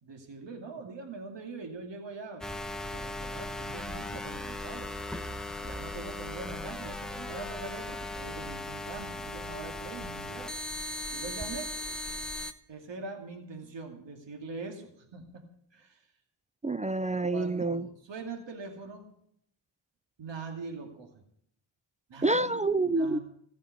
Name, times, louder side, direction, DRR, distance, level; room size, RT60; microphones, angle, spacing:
voice 1, 0.0-2.6 2.9-4.9 5.6-10.5 11.1-11.7 12.7-15.4 15.7-16.1 17.3-19.1 20.2-21.2 22.1-22.6 23.0-23.2, right 4 dB, 65° right, 4 dB, 2.5 m, -42 dB
sound 1, 2.4-12.5, left 1 dB, ahead, 1.2 m, -38 dB
voice 2, 16.6-17.9 22.2-23.2, right 2 dB, 15° right, 14 dB, 0.4 m, -27 dB
15.0 x 7.2 x 8.0 m, 0.69 s
cardioid pair, 65°, 48 cm